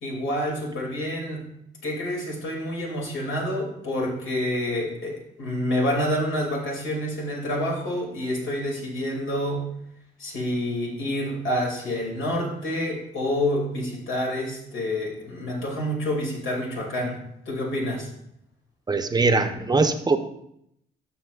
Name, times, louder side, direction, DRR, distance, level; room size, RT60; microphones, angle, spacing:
voice 1, 0.0-1.5 1.8-9.7 10.2-17.2 17.5-18.1, left 1 dB, 75° left, -2 dB, 2.6 m, -28 dB
voice 2, 18.9-20.2, right 3 dB, 20° right, 8 dB, 0.7 m, -21 dB
12.5 x 6.0 x 2.4 m, 0.75 s
cardioid pair, 90°, 20 cm